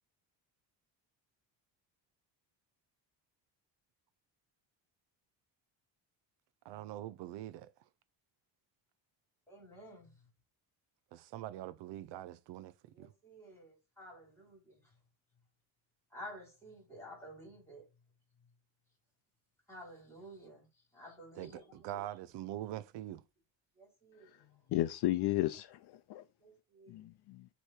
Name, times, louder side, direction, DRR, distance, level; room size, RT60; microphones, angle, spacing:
voice 1, 6.6-7.7 11.1-13.1 21.3-23.2, right 13 dB, 70° right, 0.5 m, -44 dB
voice 2, 9.5-10.1 12.9-14.8 16.1-17.8 19.7-20.7 20.9-22.0 23.8-24.3 26.4-27.0, equal, 5° left, 3.5 m, -52 dB
voice 3, 24.7-26.2 26.9-27.5, left 15 dB, 60° left, 0.6 m, -33 dB
7.9 x 3.1 x 4.4 m
cardioid pair, 160°, 44 cm